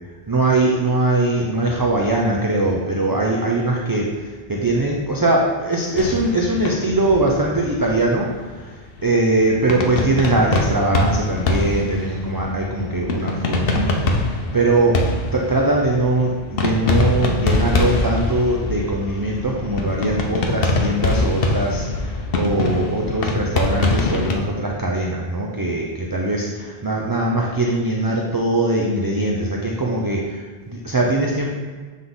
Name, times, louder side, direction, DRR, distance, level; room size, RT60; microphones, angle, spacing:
voice 1, 0.3-15.1 15.3-31.5, right 2 dB, 25° right, -2 dB, 0.5 m, -21 dB
sound 1, 5.9-24.3, left 2 dB, 65° left, 0.9 m, -23 dB
7.8 x 3.6 x 3.8 m, 1.5 s
omnidirectional pair, 1.1 m